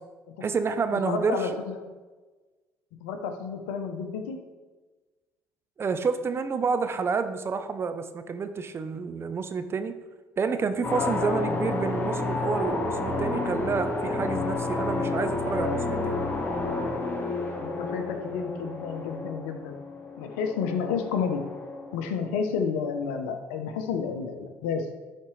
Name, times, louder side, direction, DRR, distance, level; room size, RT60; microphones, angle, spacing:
voice 1, 0.4-1.6 5.8-9.9 10.4-16.2, right 5 dB, 35° right, 9 dB, 0.7 m, -29 dB
voice 2, 1.0-1.9 2.9-4.4 10.9-11.4 17.5-19.8 20.2-21.5 21.9-24.9, left 6 dB, 80° left, 6 dB, 0.8 m, -31 dB
sound 1, 10.8-22.3, left 2 dB, 30° left, 1.4 m, -30 dB
11.0 x 4.2 x 3.2 m, 1.3 s
hypercardioid pair, 65°, 7 cm